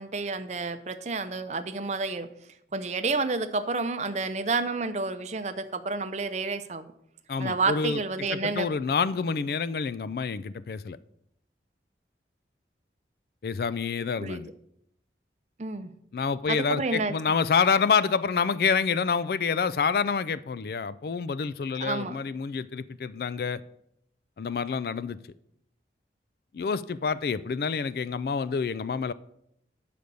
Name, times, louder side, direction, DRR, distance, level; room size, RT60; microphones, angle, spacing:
voice 1, 0.0-2.3 2.7-6.9 7.4-8.7 14.2-14.4 15.6-15.9 16.5-17.1 21.8-22.2, right 3 dB, 40° right, 0.6 m, -30 dB
voice 2, 7.3-8.0 8.3-11.0 13.4-14.5 16.1-23.6 24.4-25.2 26.5-29.1, left 5 dB, 55° left, 0.3 m, -27 dB
9.3 x 5.1 x 6.8 m
head